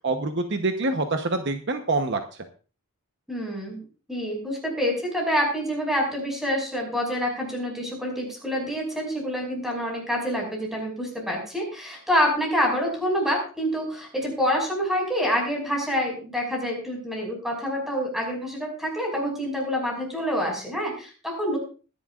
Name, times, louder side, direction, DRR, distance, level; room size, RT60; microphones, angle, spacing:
voice 1, 0.0-2.2, right 2 dB, 55° right, 6 dB, 1.0 m, -25 dB
voice 2, 3.3-21.6, equal, ahead, 0 dB, 5.8 m, -27 dB
21.5 x 11.5 x 2.5 m, 0.35 s
head